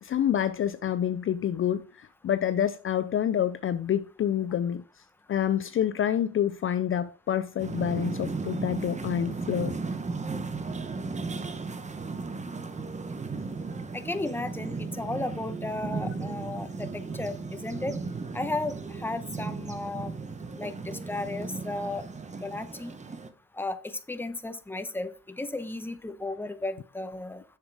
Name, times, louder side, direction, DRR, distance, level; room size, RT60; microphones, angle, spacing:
voice 1, 0.0-4.8 5.3-9.7, left 9 dB, 45° left, 0.5 m, -27 dB
sound 1, 7.6-23.3, right 4 dB, 25° right, 0.9 m, -35 dB
voice 2, 13.9-18.0 18.3-20.1 20.6-22.0 22.4-23.0 23.5-27.4, left 2 dB, 5° left, 0.8 m, -34 dB
7.3 x 7.2 x 3.4 m
cardioid pair, 90°, 30 cm